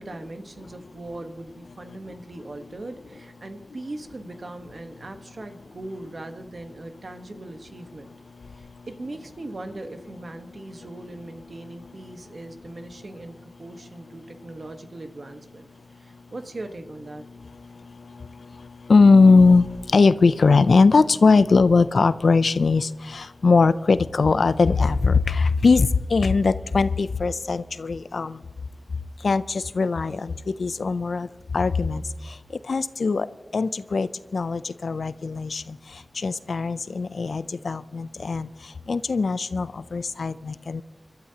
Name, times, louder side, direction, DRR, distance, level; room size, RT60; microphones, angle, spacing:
voice 1, 0.0-8.1 8.5-15.7 16.0-17.2, right 2 dB, 60° right, 6 dB, 1.2 m, -39 dB
voice 2, 18.9-28.4 29.2-30.3 30.6-31.3 31.5-32.0 32.7-33.3 33.5-35.8 36.2-38.5 38.9-40.8, left 4 dB, 80° left, 15 dB, 0.4 m, -20 dB
26.5 x 12.5 x 2.9 m, 1.2 s
wide cardioid pair, 50°, 0 cm